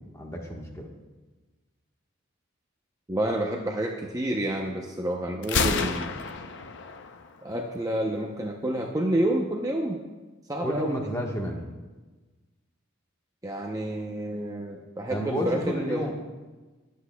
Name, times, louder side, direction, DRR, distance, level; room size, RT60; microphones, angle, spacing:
voice 1, 0.1-0.9 10.6-11.6 15.1-16.1, equal, 15° left, 0 dB, 1.3 m, -31 dB
voice 2, 3.1-6.1 7.4-10.0 10.5-11.1 13.4-16.1, right 1 dB, 15° right, 0 dB, 0.6 m, -29 dB
Gunshot gunfire, 5.4-7.4, left 5 dB, 55° left, 0.6 m, -29 dB
20.0 x 8.2 x 2.3 m, 1.2 s
head